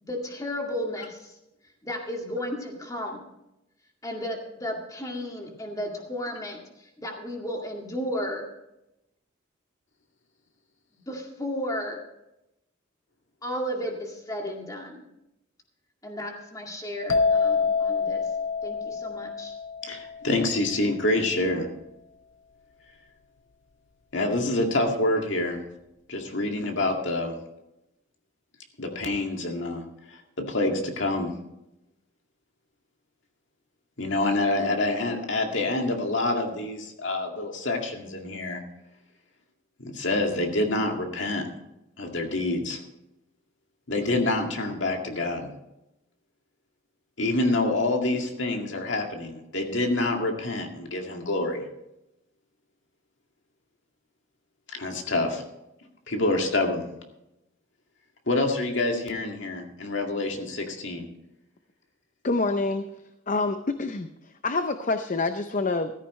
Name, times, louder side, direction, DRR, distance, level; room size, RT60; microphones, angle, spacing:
voice 1, 0.0-1.4 1.8-3.3 4.0-8.5 11.1-12.0 13.4-15.1 16.0-18.3 18.6-19.5, equal, 15° left, 1 dB, 2.1 m, -34 dB
sound 1, 17.1-20.7, left 5 dB, 80° left, 0.7 m, -27 dB
voice 2, 19.8-21.7 24.1-25.6 26.1-27.3 28.8-29.8 30.1-31.3 34.0-38.6 39.8-41.4 42.0-42.8 43.9-45.5 47.2-51.6 54.7-55.4 56.1-56.8 58.3-61.1, left 2 dB, 60° left, 2 dB, 2.2 m, -27 dB
voice 3, 62.2-62.8 63.3-64.1 64.4-65.9, left 3 dB, 40° left, 8 dB, 0.6 m, -26 dB
15.0 x 13.5 x 3.2 m, 0.88 s
head